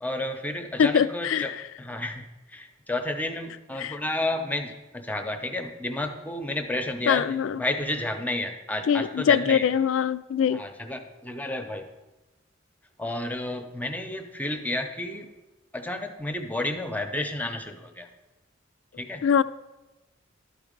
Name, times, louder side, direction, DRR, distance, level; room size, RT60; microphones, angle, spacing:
voice 1, 0.0-1.5 1.8-9.7 10.5-11.8 13.0-15.3 15.7-18.1 19.0-19.2, left 1 dB, 10° left, 6 dB, 0.6 m, -31 dB
voice 2, 0.8-1.6 3.8-4.0 7.1-7.6 8.9-10.6 19.2-19.4, left 7 dB, 85° left, 16 dB, 0.3 m, -23 dB
11.5 x 4.0 x 5.1 m, 1.0 s
head